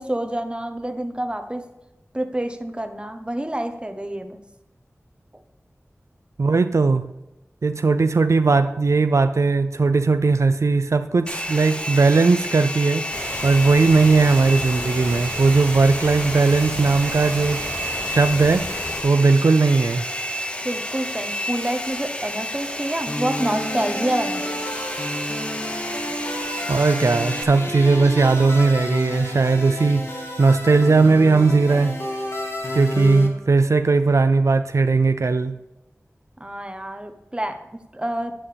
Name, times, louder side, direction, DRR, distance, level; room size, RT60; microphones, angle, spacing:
voice 1, 0.0-1.6 2.1-4.4 20.6-24.7 36.4-38.3, right 1 dB, 20° right, 6 dB, 1.1 m, -28 dB
voice 2, 6.4-7.1 7.6-13.1 13.4-17.7 18.1-20.1 26.7-32.0 32.7-35.6, right 3 dB, 75° right, 9 dB, 0.4 m, -18 dB
Domestic sounds home sounds, 11.3-27.4, equal, 20° left, 0.9 m, -30 dB
sound 1, 13.1-19.0, left 1 dB, 75° left, 3.9 m, -33 dB
sound 2, 23.1-33.3, left 1 dB, 55° left, 1.8 m, -30 dB
11.0 x 9.1 x 3.5 m, 0.97 s
wide cardioid pair, 50°, 5 cm